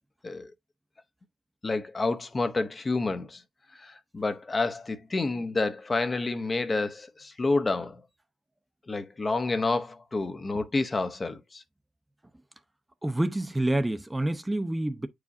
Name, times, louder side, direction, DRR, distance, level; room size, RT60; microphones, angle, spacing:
voice 1, 1.6-3.4 3.8-8.0 8.9-11.6, left 3 dB, 25° left, 0.7 m, -29 dB
voice 2, 13.0-15.1, right 1 dB, 10° right, 0.7 m, -27 dB
8.2 x 4.9 x 2.6 m
cardioid pair, 90°, 0 cm